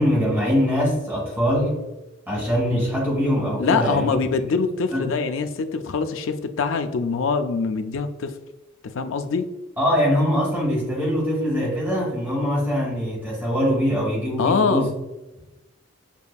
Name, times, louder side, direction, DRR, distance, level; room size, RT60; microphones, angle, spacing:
voice 1, 0.0-1.8 2.3-4.2 4.9-5.0 9.8-14.9, equal, 10° right, -4 dB, 1.2 m, -22 dB
voice 2, 3.6-8.3 8.9-9.5 14.4-14.9, left 4 dB, 60° left, 8 dB, 0.4 m, -23 dB
6.9 x 2.6 x 2.3 m, 1.0 s
head